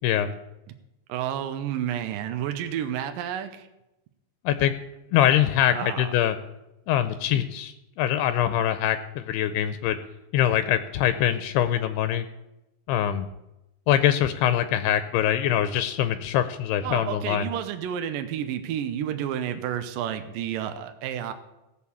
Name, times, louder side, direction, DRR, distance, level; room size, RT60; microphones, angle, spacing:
voice 1, 0.0-0.3 4.4-4.8 5.1-6.4 6.9-10.0 10.3-12.3 12.9-13.3 13.9-17.5, left 11 dB, 85° left, 11 dB, 2.6 m, -23 dB
voice 2, 1.1-3.7 5.7-6.1 16.8-21.3, right 10 dB, 75° right, 8 dB, 2.2 m, -30 dB
16.5 x 6.6 x 7.2 m, 0.93 s
omnidirectional pair, 4.7 m